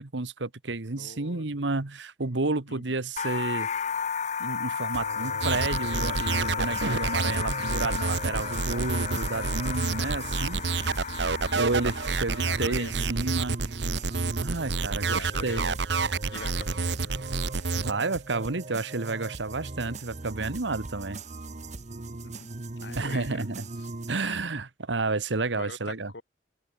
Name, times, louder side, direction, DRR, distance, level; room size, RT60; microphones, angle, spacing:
voice 1, 0.0-3.7 4.4-10.6 11.5-13.6 14.4-15.7 17.7-21.2 23.0-23.7 24.1-26.1, right 3 dB, 90° right, 1.4 m, -31 dB
voice 2, 1.0-1.6 2.2-2.3 2.7-3.0 12.4-13.2 15.1-15.8 16.3-17.2 22.2-22.5 22.8-23.5 23.8-23.9 24.2-24.4 25.5-26.2, left 3 dB, 75° left, 2.5 m, -43 dB
sound 1, 3.2-12.9, left 6 dB, 40° left, 1.1 m, -33 dB
sound 2, 4.9-24.1, right 3 dB, 40° right, 1.0 m, -40 dB
sound 3, 5.4-17.9, right 4 dB, 70° right, 1.1 m, -29 dB
open air
head